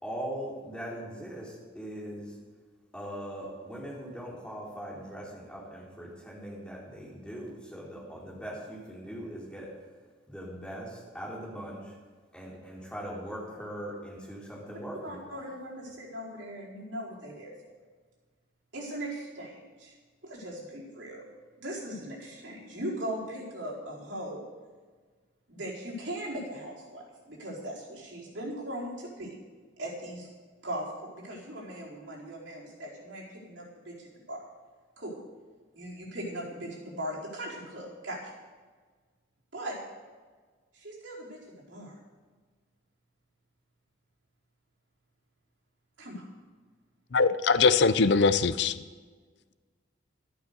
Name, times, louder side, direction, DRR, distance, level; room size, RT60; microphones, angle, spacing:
voice 1, 0.0-2.4 2.9-9.7 10.3-12.0 12.3-15.2, equal, 5° left, -5 dB, 3.8 m, -40 dB
voice 2, 15.0-17.5 18.7-19.9 20.2-21.3 21.6-24.4 25.5-29.4 29.8-30.3 30.6-34.4 35.0-35.1 35.7-38.3 39.5-39.8 40.7-41.4 41.7-41.9 46.0-46.3, right 1 dB, 65° right, -5 dB, 4.5 m, -39 dB
voice 3, 47.1-48.8, left 4 dB, 60° left, 14 dB, 0.5 m, -22 dB
12.5 x 12.0 x 6.7 m, 1.4 s
head